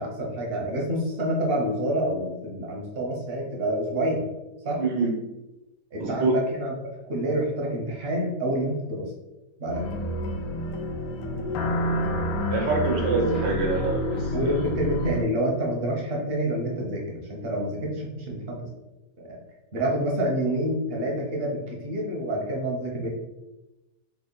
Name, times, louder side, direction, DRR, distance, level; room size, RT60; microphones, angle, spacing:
voice 1, 0.0-4.2 4.6-4.8 5.9-6.7 7.1-9.1 9.6-9.9 14.3-18.7 19.3-19.4 19.7-23.1, right 1 dB, 55° right, -1 dB, 0.6 m, -28 dB
voice 2, 4.8-5.1 6.0-6.3 11.4-11.5 12.5-14.6, right 3 dB, 85° right, -2 dB, 1.3 m, -26 dB
sound 1, 9.7-15.2, equal, 90° left, 1.2 m, -28 dB
3.5 x 2.1 x 3.7 m, 0.99 s
omnidirectional pair, 1.8 m